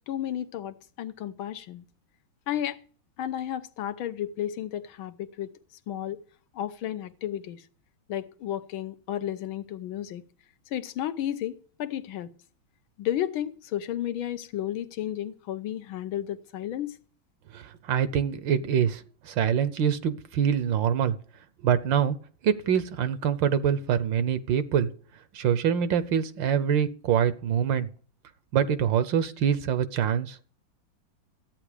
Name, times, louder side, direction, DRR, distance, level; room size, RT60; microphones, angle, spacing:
voice 1, 0.1-1.8 2.5-2.8 3.2-5.5 5.9-6.2 6.5-7.6 8.1-10.2 10.7-12.3 13.0-17.0, left 11 dB, 85° left, 1.7 m, -32 dB
voice 2, 17.5-21.1 21.6-22.2 22.4-24.9 25.3-27.9 28.5-30.4, right 8 dB, 70° right, 1.4 m, -25 dB
13.5 x 9.0 x 5.0 m
omnidirectional pair, 2.2 m